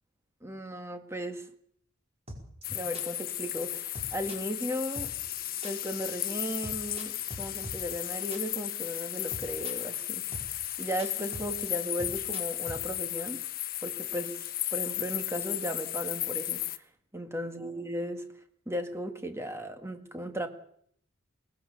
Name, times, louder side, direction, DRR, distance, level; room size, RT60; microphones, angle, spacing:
voice 1, 0.4-1.5 2.7-5.1 5.6-10.3 10.8-13.4 13.8-14.4 14.7-16.6 17.1-18.3 18.7-20.5, equal, 15° right, 7 dB, 1.8 m, -36 dB
sound 1, 2.3-12.8, right 1 dB, 30° right, 5.1 m, -43 dB
sound 2, 2.6-16.8, left 14 dB, 45° left, 1.1 m, -35 dB
24.5 x 19.5 x 7.0 m, 0.67 s
head